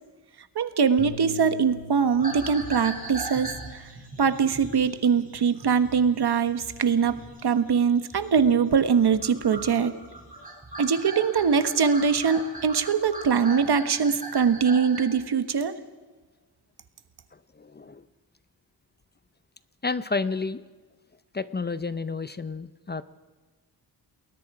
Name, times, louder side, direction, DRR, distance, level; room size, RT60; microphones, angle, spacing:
voice 1, 0.5-3.8 4.2-9.9 10.8-15.7, right 6 dB, 70° right, 10 dB, 1.4 m, -22 dB
Bass guitar, 1.0-7.2, equal, 75° left, 4.5 m, -45 dB
sound 1, 2.2-8.6 8.9-15.2, right 2 dB, 20° right, 6.5 m, -40 dB
voice 2, 17.6-18.0 19.8-20.6 21.3-23.0, left 4 dB, 25° left, 14 dB, 0.6 m, -30 dB
29.0 x 21.0 x 4.9 m, 1.3 s
wide cardioid pair, 160°, 40 cm